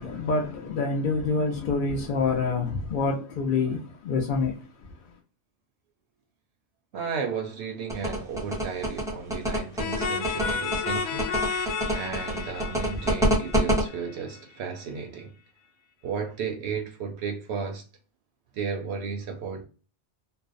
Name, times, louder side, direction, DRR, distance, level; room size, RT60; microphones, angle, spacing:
voice 1, 0.0-4.5, left 4 dB, 55° left, 0.6 m, -26 dB
voice 2, 6.9-11.3 11.6-15.3 16.0-17.8 18.5-19.7, right 5 dB, 70° right, 0.8 m, -34 dB
sound 1, 7.9-13.8, right 1 dB, 5° right, 0.7 m, -25 dB
sound 2, 9.8-14.4, left 5 dB, 90° left, 0.9 m, -32 dB
2.5 x 2.1 x 2.4 m
omnidirectional pair, 1.2 m